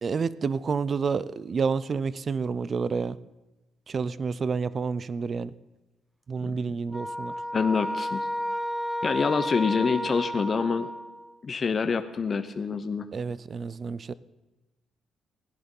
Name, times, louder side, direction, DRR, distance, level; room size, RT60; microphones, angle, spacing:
voice 1, 0.0-3.2 3.9-5.5 6.3-7.3 13.1-14.1, right 5 dB, 45° right, 18 dB, 0.5 m, -29 dB
sound 1, 6.9-11.3, equal, 5° right, 0.8 m, -32 dB
voice 2, 7.5-8.3 9.0-10.9 11.4-13.1, left 5 dB, 40° left, 9 dB, 0.7 m, -26 dB
16.5 x 10.5 x 5.4 m, 1.1 s
cardioid pair, 90°, 0 cm